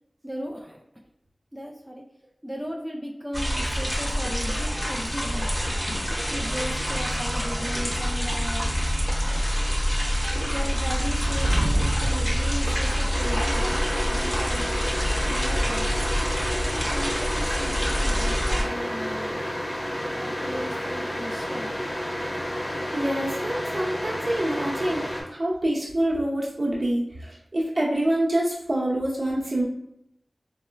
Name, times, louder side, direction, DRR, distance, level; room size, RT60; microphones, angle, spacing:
voice 1, 0.2-0.8 1.5-2.0 2.4-5.6 6.3-8.8 10.4-14.8 15.2-15.9 16.6-19.4 20.1-21.7, equal, 10° right, -1 dB, 0.3 m, -36 dB
sound 1, 3.3-18.6, equal, 10° left, 1.0 m, -26 dB
sound 2, 11.0-14.0, right 1 dB, 80° right, 0.4 m, -31 dB
sound 3, 13.1-25.2, equal, 35° left, 0.7 m, -31 dB
voice 2, 22.6-29.6, right 1 dB, 60° right, -5 dB, 0.9 m, -26 dB
4.2 x 2.1 x 2.2 m, 0.80 s
wide cardioid pair, 70°, 0 cm